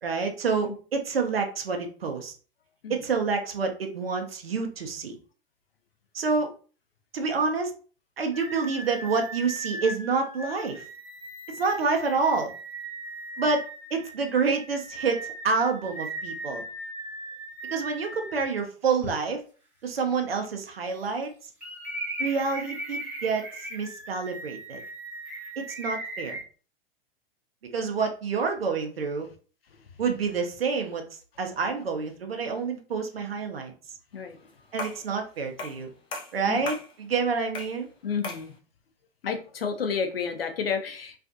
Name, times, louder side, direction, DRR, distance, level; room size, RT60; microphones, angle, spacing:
voice 1, 0.0-2.3 2.9-5.2 6.1-6.5 7.1-7.7 8.2-10.8 11.5-12.5 13.4-13.6 13.9-16.6 17.7-19.4 19.8-21.3 22.2-24.8 25.6-26.4 27.7-29.3 30.0-33.7 34.7-35.9 36.3-37.9, right 4 dB, 80° right, 5 dB, 0.6 m, -28 dB
sound 1, 8.3-18.5 19.0-19.1 21.6-26.4, right 2 dB, 5° right, 0.9 m, -38 dB
sound 2, 34.8-35.1 35.6-35.8 36.1-36.9 37.5-37.8 38.2-38.5, left 3 dB, 15° left, 0.3 m, -36 dB
voice 2, 38.0-38.5 39.2-41.1, left 6 dB, 80° left, 6 dB, 0.6 m, -30 dB
2.4 x 2.4 x 2.4 m, 0.39 s
figure-of-eight pair, 90°, 29 cm